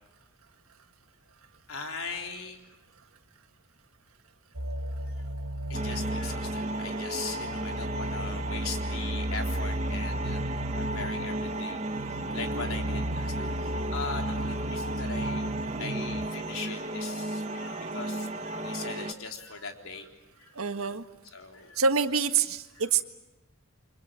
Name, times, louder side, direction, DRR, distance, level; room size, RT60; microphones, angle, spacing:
voice 1, 1.7-2.6 5.7-10.5 10.7-15.5 15.8-20.1 20.4-20.6 21.3-21.8, left 4 dB, 85° left, 3 dB, 3.8 m, -40 dB
sound 1, 4.5-16.3, right 1 dB, 60° right, 1.4 m, -35 dB
sound 2, 5.7-19.1, right 1 dB, 35° right, 1.3 m, -34 dB
voice 2, 12.3-12.8 20.5-21.1 21.7-23.0, right 5 dB, 90° right, 8 dB, 1.6 m, -27 dB
29.5 x 25.5 x 7.6 m, 0.96 s
head